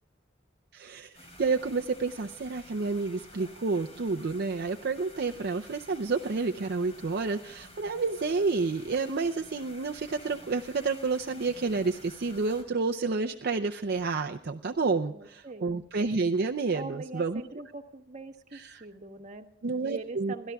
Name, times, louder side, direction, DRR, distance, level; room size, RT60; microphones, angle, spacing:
voice 1, 0.7-17.4 18.5-18.9 19.6-20.3, right 4 dB, 55° right, 5 dB, 0.6 m, -30 dB
sound 1, 1.1-12.6, left 1 dB, 35° left, 3.6 m, -51 dB
voice 2, 15.1-15.7 16.7-19.5 19.8-20.5, right 3 dB, 40° right, 5 dB, 1.2 m, -42 dB
29.0 x 12.5 x 2.3 m, 0.75 s
head